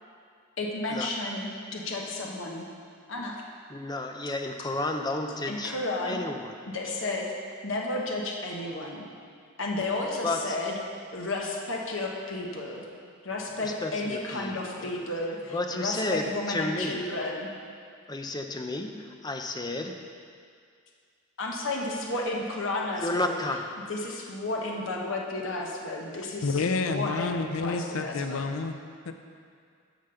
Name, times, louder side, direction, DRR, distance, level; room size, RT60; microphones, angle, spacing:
voice 1, 0.6-2.7 3.1-3.4 5.5-6.2 6.7-7.3 7.6-9.0 9.6-10.7 11.1-12.8 13.2-17.5 21.4-23.3 23.8-28.5, left 2 dB, 60° left, -1 dB, 1.1 m, -32 dB
voice 2, 3.7-5.7 6.0-6.6 10.2-10.5 13.6-14.9 15.5-17.0 18.1-19.9 23.0-23.6, left 2 dB, 20° left, 4 dB, 0.5 m, -32 dB
voice 3, 26.4-28.8 29.1-29.2, left 3 dB, 85° left, 8 dB, 0.6 m, -29 dB
9.1 x 5.2 x 6.9 m, 2.2 s
head